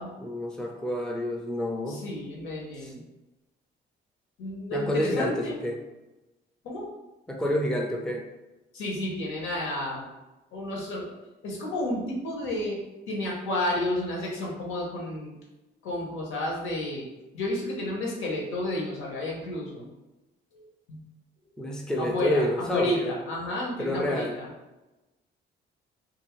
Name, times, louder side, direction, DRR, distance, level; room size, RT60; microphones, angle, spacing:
voice 1, 0.2-2.0 2.8-2.9 4.7-5.8 7.3-8.3 21.6-23.2 23.8-24.4, equal, 5° left, 0 dB, 0.5 m, -28 dB
voice 2, 1.9-3.0 4.4-5.6 6.6-6.9 8.7-10.1 10.5-11.1 11.4-12.8 13.1-15.4 15.8-17.1 17.3-19.9 20.5-21.0 22.0-24.5, left 1 dB, 90° left, -3 dB, 0.9 m, -31 dB
2.6 x 2.4 x 3.0 m, 1.1 s
cardioid pair, 90°, 20 cm